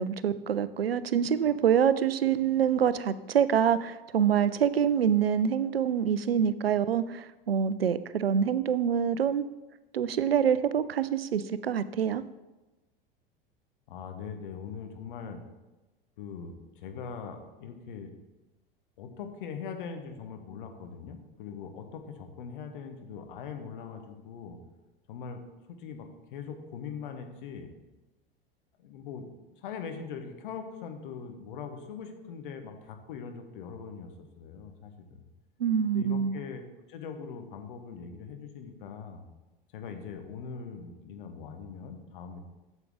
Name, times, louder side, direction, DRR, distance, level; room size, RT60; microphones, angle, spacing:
voice 1, 0.0-9.4 9.9-12.2 35.6-36.4, right 8 dB, 80° right, 15 dB, 0.5 m, -26 dB
voice 2, 13.9-15.4 16.2-18.1 19.0-24.6 25.1-25.4 25.7-27.7 28.8-29.3 29.6-35.2 35.9-36.6 36.9-39.2 39.7-42.4, left 6 dB, 60° left, 6 dB, 1.2 m, -41 dB
8.2 x 7.0 x 3.7 m, 1.1 s
figure-of-eight pair, 80°, 29 cm